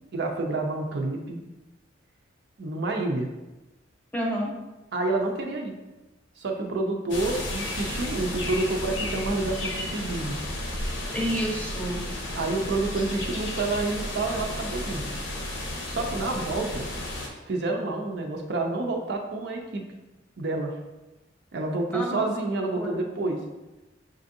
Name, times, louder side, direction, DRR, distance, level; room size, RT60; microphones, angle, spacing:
voice 1, 0.1-1.4 2.6-3.3 4.9-5.7 6.4-10.4 12.3-15.1 15.9-16.9 17.5-19.8 20.4-20.7 21.5-23.4, right 2 dB, 65° right, 1 dB, 0.6 m, -28 dB
voice 2, 4.1-4.5 11.1-12.0 21.9-22.4 22.7-23.0, equal, 10° left, -2 dB, 0.7 m, -29 dB
sound 1, 7.1-17.3, left 1 dB, 70° left, 0.7 m, -33 dB
6.1 x 2.6 x 2.6 m, 1.1 s
head